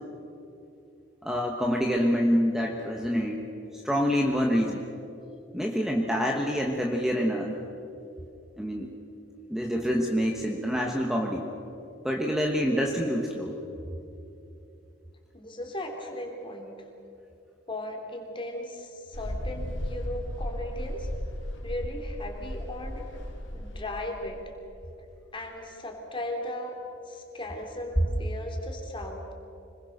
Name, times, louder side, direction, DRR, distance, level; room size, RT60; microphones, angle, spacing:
voice 1, 1.2-3.4 3.7-4.8 5.5-7.6 8.6-8.9 9.5-11.5 12.0-13.6, equal, 5° right, 0 dB, 1.4 m, -26 dB
voice 2, 15.3-16.7 17.7-21.1 21.6-23.1 23.5-24.4 25.3-26.8 27.1-29.3, left 1 dB, 25° left, 2 dB, 3.4 m, -37 dB
Mechanical fan, 19.1-24.5, equal, 75° left, 2.5 m, -35 dB
25.5 x 21.0 x 6.7 m, 2.8 s
head